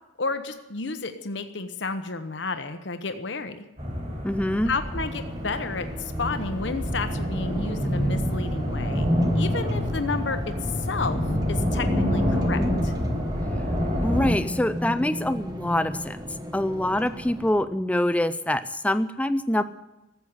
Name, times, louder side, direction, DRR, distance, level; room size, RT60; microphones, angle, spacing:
voice 1, 0.2-3.7 4.7-9.1 9.3-10.5 10.9-11.2 11.5-12.9, left 4 dB, 65° left, 9 dB, 1.0 m, -31 dB
sound 1, 3.8-14.3, equal, 35° right, 3.9 m, -27 dB
voice 2, 4.2-4.7 14.0-19.6, left 1 dB, 5° left, 13 dB, 0.4 m, -25 dB
sound 2, 4.9-17.5, equal, 20° right, 1.1 m, -36 dB
13.5 x 8.2 x 9.5 m, 0.99 s
head